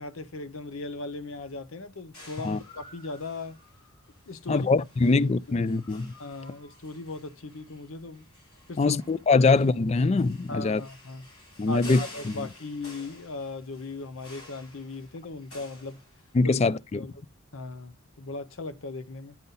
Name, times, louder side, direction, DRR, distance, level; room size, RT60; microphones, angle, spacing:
voice 1, 0.0-3.6 4.3-4.7 5.1-5.2 5.5-5.6 6.2-8.3 8.7-9.0 9.4-9.5 10.5-11.3 11.7-16.0 16.4-16.6 16.9-17.1 17.5-19.4, left 3 dB, 70° left, 0.8 m, -38 dB
sound 1, 2.1-16.6, left 2 dB, 90° left, 5.5 m, -51 dB
voice 2, 4.5-6.1 8.8-10.8 11.6-12.5 16.3-17.1, left 3 dB, 30° left, 0.3 m, -23 dB
10.5 x 4.0 x 4.0 m
head